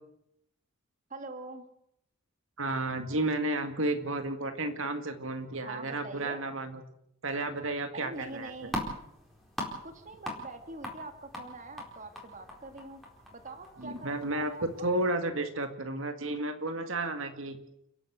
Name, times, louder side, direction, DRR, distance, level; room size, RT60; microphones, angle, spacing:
voice 1, 1.1-1.6 5.7-6.4 7.9-8.8 9.8-13.0 13.3-14.9, right 2 dB, 35° right, 7 dB, 2.1 m, -44 dB
voice 2, 2.6-6.8 7.2-8.5 13.8-17.6, right 2 dB, 70° right, 7 dB, 2.0 m, -32 dB
sound 1, 8.1-14.9, left 1 dB, ahead, 4.4 m, -42 dB
30.0 x 11.0 x 8.1 m, 0.76 s
head